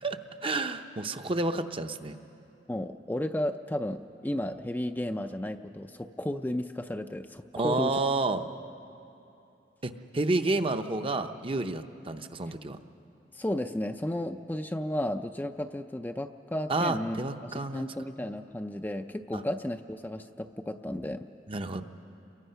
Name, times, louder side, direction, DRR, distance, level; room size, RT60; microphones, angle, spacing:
voice 1, 0.0-2.2 7.5-8.4 9.8-12.8 16.7-17.9 19.3-19.4 21.5-21.8, right 2 dB, 30° right, 7 dB, 0.7 m, -30 dB
voice 2, 2.7-8.0 13.3-21.3, left 1 dB, 10° left, 6 dB, 0.4 m, -33 dB
28.5 x 22.5 x 5.6 m, 2.8 s
head